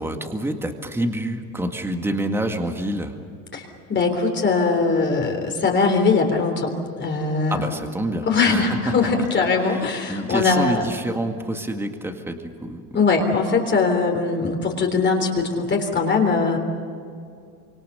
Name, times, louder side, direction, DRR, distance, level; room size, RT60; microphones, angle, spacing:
voice 1, 0.0-3.1 7.5-8.9 9.2-9.3 9.6-12.8, right 1 dB, 5° right, 4 dB, 2.0 m, -27 dB
voice 2, 3.5-7.7 8.2-10.9 12.9-16.6, left 4 dB, 25° left, 2 dB, 3.6 m, -21 dB
27.0 x 25.5 x 6.9 m, 2.3 s
cardioid pair, 145°, 42 cm